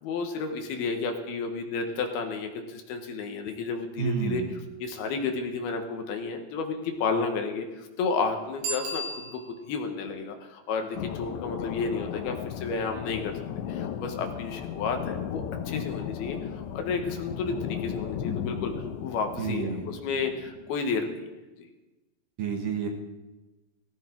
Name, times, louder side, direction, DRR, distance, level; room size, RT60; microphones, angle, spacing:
voice 1, 0.0-4.4 4.8-13.3 13.7-21.3, left 4 dB, 70° left, 5 dB, 3.0 m, -32 dB
voice 2, 4.0-4.5 19.4-19.8 22.4-22.9, right 6 dB, 60° right, 3 dB, 2.7 m, -30 dB
Bicycle bell, 8.6-9.8 15.2-15.3, right 1 dB, 85° right, 5.6 m, -34 dB
sound 1, 10.9-20.8, left 9 dB, 90° left, 3.1 m, -35 dB
18.5 x 15.0 x 4.5 m, 1.1 s
omnidirectional pair, 4.9 m